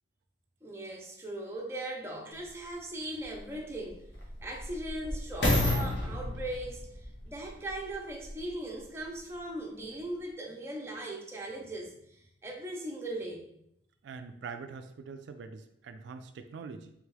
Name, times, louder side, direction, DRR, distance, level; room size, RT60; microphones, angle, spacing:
voice 1, 0.6-4.1 4.4-13.5, right 1 dB, 15° right, -1 dB, 0.5 m, -39 dB
sound 1, 2.4-2.5 3.2-8.5 9.2-9.3, left 1 dB, 80° left, 1.1 m, -32 dB
voice 2, 14.0-16.9, right 5 dB, 75° right, 8 dB, 0.3 m, -44 dB
3.5 x 3.3 x 3.2 m, 0.76 s
head